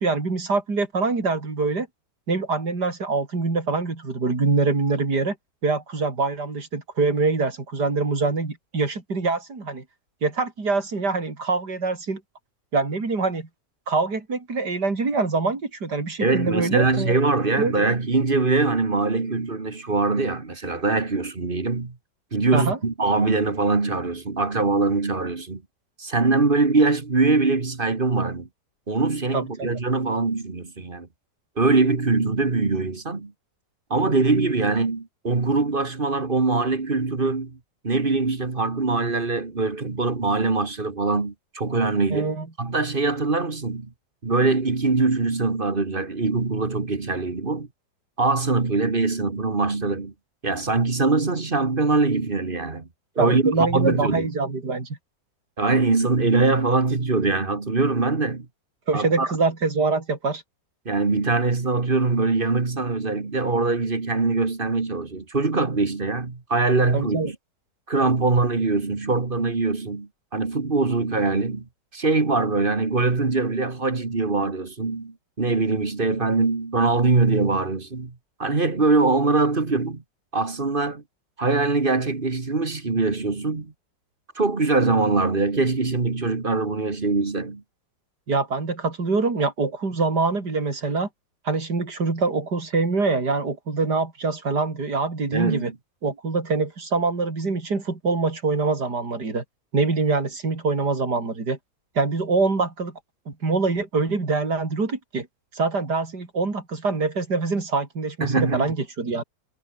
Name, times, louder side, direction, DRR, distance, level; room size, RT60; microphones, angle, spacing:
voice 1, 0.0-1.9 2.3-5.4 5.6-9.8 10.2-12.2 12.7-13.5 13.9-17.2 17.6-17.9 22.5-22.8 29.3-29.7 42.1-42.5 53.2-54.9 58.9-60.4 66.9-67.3 88.3-91.1 91.4-95.7 96.0-99.4 99.7-101.6 101.9-103.0 103.3-105.3 105.5-109.2, right 3 dB, 70° right, 4.6 m, -24 dB
voice 2, 16.2-21.9 22.3-25.6 26.0-28.5 28.9-31.1 31.6-33.3 33.9-37.6 37.8-42.3 42.6-43.9 44.2-47.7 48.2-50.1 50.4-52.9 53.2-54.3 55.6-58.5 58.9-59.3 60.9-67.4 67.9-71.7 71.9-78.1 78.4-80.0 80.3-81.0 81.4-83.7 84.4-87.6 95.3-95.7 108.2-108.7, right 3 dB, 30° right, 1.9 m, -22 dB
omnidirectional pair, 1.9 m